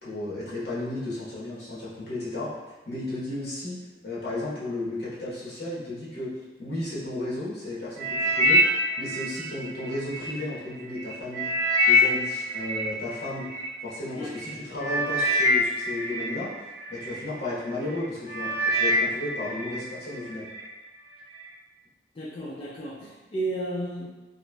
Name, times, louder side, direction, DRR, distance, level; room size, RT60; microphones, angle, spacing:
voice 1, 0.0-2.5 2.9-6.3 6.6-8.6 9.0-11.5 11.8-13.5 13.8-16.5 16.9-20.5, left 2 dB, 65° left, -8 dB, 1.1 m, -34 dB
sound 1, 8.0-10.3 10.8-13.7 14.4-14.5 14.8-17.2 17.7-18.0 18.3-19.8 20.1-20.6 21.2-21.3, left 1 dB, 55° right, 0.8 m, -25 dB
voice 2, 14.1-14.6 22.2-24.1, right 1 dB, 30° left, -7 dB, 0.4 m, -33 dB
3.0 x 2.5 x 2.2 m, 1.2 s
head